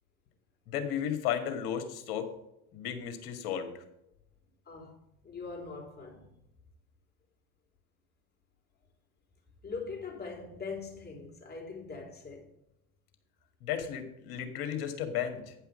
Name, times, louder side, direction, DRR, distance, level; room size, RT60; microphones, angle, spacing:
voice 1, 0.7-2.3 2.7-3.8 13.6-15.5, left 9 dB, 55° left, 2.0 m, -34 dB
voice 2, 4.6-6.3 9.6-12.5, left 4 dB, 20° left, 3.2 m, -42 dB
9.5 x 5.6 x 6.4 m
hypercardioid pair, 95°, 44 cm